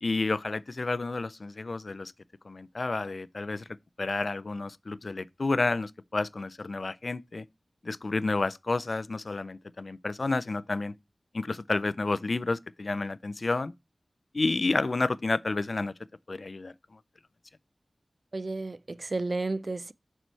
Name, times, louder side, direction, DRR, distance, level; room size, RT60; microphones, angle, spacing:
voice 1, 0.0-2.1 2.4-3.6 4.0-7.5 7.8-10.9 11.3-13.7 14.3-15.9 16.3-16.7, left 3 dB, 55° left, 0.3 m, -30 dB
voice 2, 18.3-19.9, right 3 dB, 50° right, 0.3 m, -32 dB
6.7 x 4.4 x 4.4 m
wide cardioid pair, 85°, 0 cm